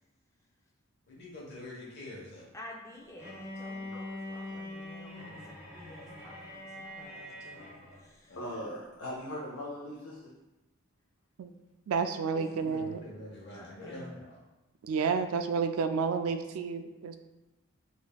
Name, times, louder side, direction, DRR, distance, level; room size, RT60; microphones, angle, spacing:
voice 1, 1.1-2.4 8.3-8.5 12.6-14.4, left 1 dB, 50° left, -4 dB, 1.0 m, -45 dB
voice 2, 2.5-7.7 8.0-8.4 12.3-12.8 13.5-14.1, left 1 dB, 15° left, -1 dB, 0.4 m, -50 dB
Bowed string instrument, 3.2-8.1, left 1 dB, 5° right, 1.3 m, -43 dB
voice 3, 8.4-10.3, left 1 dB, 80° left, -3 dB, 0.6 m, -39 dB
voice 4, 11.9-13.0 14.8-17.2, right 5 dB, 85° right, 8 dB, 0.3 m, -30 dB
5.0 x 2.6 x 2.3 m, 1.0 s
head